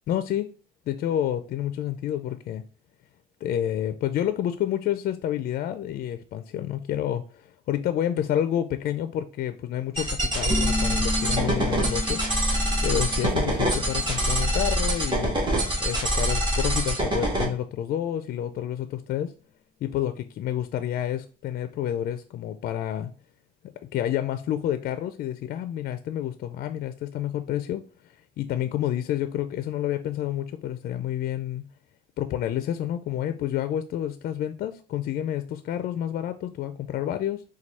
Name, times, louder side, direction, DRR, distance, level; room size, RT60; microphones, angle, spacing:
voice 1, 0.1-0.5 0.9-2.6 3.4-12.2 12.8-15.3 15.8-19.3 19.8-23.1 23.9-27.8 28.4-31.6 32.2-37.4, left 11 dB, 60° left, 10 dB, 0.4 m, -29 dB
sound 1, 10.0-17.4, right 1 dB, 25° right, 1.5 m, -25 dB
sound 2, 10.5-15.9, left 3 dB, 10° left, 0.6 m, -34 dB
4.5 x 2.3 x 4.1 m, 0.36 s
cardioid pair, 110°, 17 cm